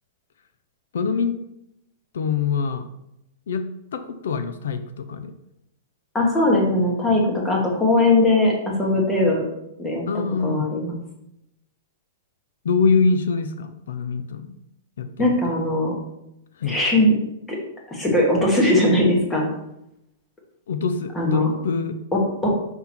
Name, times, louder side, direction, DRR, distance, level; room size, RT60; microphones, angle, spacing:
voice 1, 0.9-1.3 2.1-2.9 3.5-3.7 3.9-5.3 10.1-10.7 12.6-14.5 15.0-15.4 16.6-16.8 20.7-22.0, left 5 dB, 85° left, 9 dB, 0.7 m, -24 dB
voice 2, 6.1-9.4 9.8-10.0 10.4-11.0 15.2-15.9 16.6-17.1 17.5-17.6 17.9-19.5 21.1-21.5 22.1-22.5, left 1 dB, 10° left, -1 dB, 1.4 m, -20 dB
5.9 x 5.7 x 4.4 m, 0.83 s
supercardioid pair, 175°, 0 cm